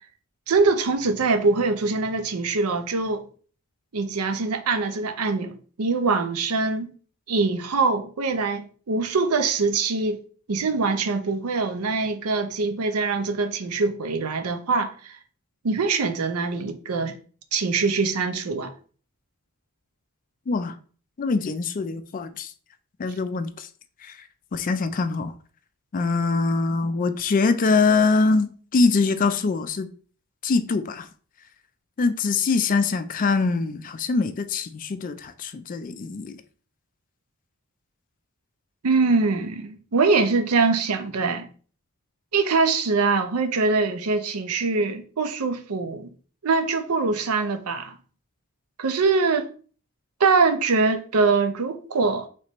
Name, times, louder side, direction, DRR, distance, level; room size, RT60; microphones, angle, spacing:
voice 1, 0.5-3.3 3.9-6.9 7.3-10.2 10.5-15.2 15.6-17.2 17.5-18.7 38.8-41.5 42.3-46.1 46.4-48.0 48.8-49.5 50.2-52.3, right 4 dB, 80° right, 0.6 m, -23 dB
voice 2, 20.5-20.8 21.2-22.5 23.0-23.7 24.0-25.3 25.9-29.9 30.4-31.1 32.0-36.4, left 4 dB, 40° left, 0.3 m, -23 dB
3.3 x 3.0 x 4.3 m
head